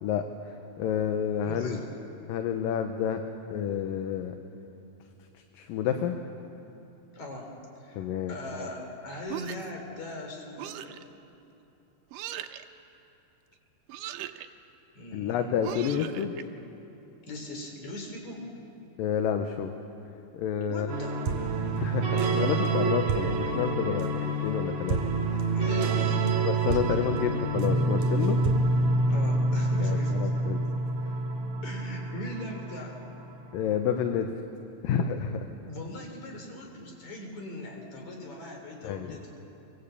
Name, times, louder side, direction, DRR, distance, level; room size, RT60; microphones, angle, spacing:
voice 1, 0.0-1.8 2.3-3.2 3.5-4.4 5.3-6.2 8.0-8.7 15.1-16.4 19.0-19.7 20.3-20.9 21.7-25.0 25.3-25.5 26.4-28.4 29.8-30.6 31.0-31.1 33.5-34.3 34.8-35.5 38.8-39.2, left 8 dB, 75° left, 6 dB, 2.6 m, -29 dB
voice 2, 1.4-1.9 7.1-7.5 7.8-10.9 14.9-15.4 17.2-18.5 20.7-21.2 25.5-26.5 29.1-30.3 31.6-33.0 35.6-39.3, left 1 dB, 55° left, 2 dB, 4.8 m, -40 dB
sound 1, 9.3-9.8 10.6-11.0 12.1-12.6 13.9-14.5 15.6-16.4, right 12 dB, 75° right, 2.4 m, -38 dB
sound 2, 20.9-33.5, right 2 dB, 55° right, 3.4 m, -27 dB
24.0 x 23.5 x 8.4 m, 2.9 s
omnidirectional pair, 4.1 m